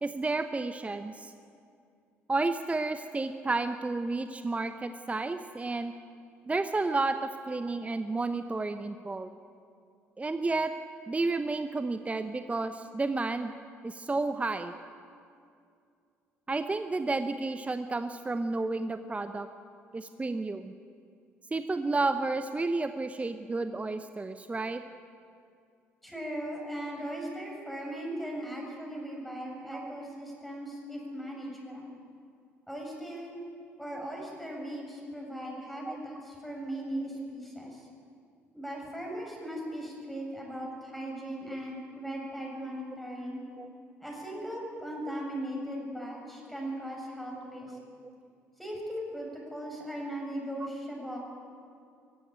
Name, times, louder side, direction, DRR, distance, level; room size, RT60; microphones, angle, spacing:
voice 1, 0.0-1.3 2.3-5.9 6.5-9.3 10.2-10.7 11.1-13.5 13.8-14.7 16.5-19.5 19.9-20.7 21.5-24.8 29.7-29.9 35.8-36.0 42.6-42.7 43.6-43.7 47.7-47.8, right 3 dB, 20° right, 10 dB, 0.9 m, -31 dB
voice 2, 26.0-31.9 32.7-33.4 33.8-37.9 38.5-43.4 44.0-47.8 48.6-51.2, equal, ahead, -1 dB, 7.0 m, -38 dB
19.5 x 15.5 x 9.3 m, 2.4 s
figure-of-eight pair, 50°, 7 cm